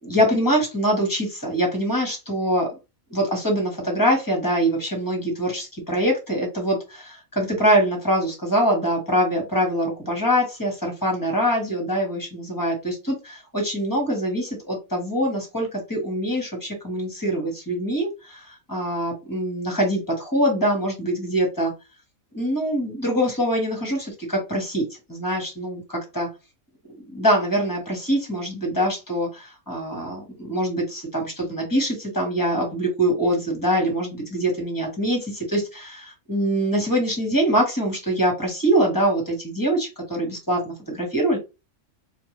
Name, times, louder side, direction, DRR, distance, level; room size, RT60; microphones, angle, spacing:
voice 1, 0.0-2.8 3.1-21.7 22.3-24.8 25.1-26.3 27.1-41.4, equal, 15° left, 1 dB, 1.5 m, -24 dB
4.5 x 2.6 x 3.2 m, 0.27 s
omnidirectional pair, 1.4 m